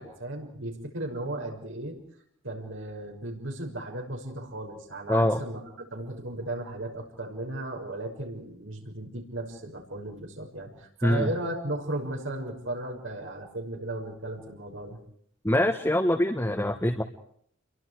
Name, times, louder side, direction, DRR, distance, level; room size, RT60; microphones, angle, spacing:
voice 1, 0.0-1.9 2.4-15.0, right 1 dB, 75° right, 1 dB, 6.3 m, -35 dB
voice 2, 5.1-5.4 11.0-11.3 15.4-17.0, left 1 dB, 15° left, 3 dB, 1.6 m, -24 dB
30.0 x 24.0 x 4.9 m, 0.66 s
head